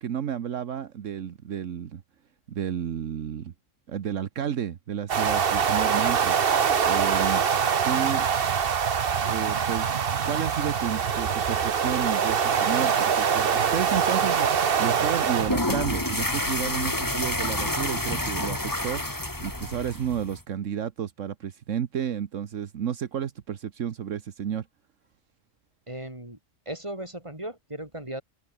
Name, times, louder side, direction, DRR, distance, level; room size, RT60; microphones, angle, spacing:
voice 1, 0.0-2.0 2.5-3.5 3.9-6.4 6.8-7.4 7.8-8.3 9.2-9.9 10.2-24.7, right 9 dB, 75° right, 1.4 m, -31 dB
sound 1, 5.1-15.5, right 7 dB, 50° right, 1.2 m, -24 dB
sound 2, 15.4-20.4, left 1 dB, 15° left, 2.8 m, -29 dB
voice 2, 25.9-26.4 26.7-28.2, right 1 dB, 25° right, 5.1 m, -37 dB
open air
omnidirectional pair, 1.3 m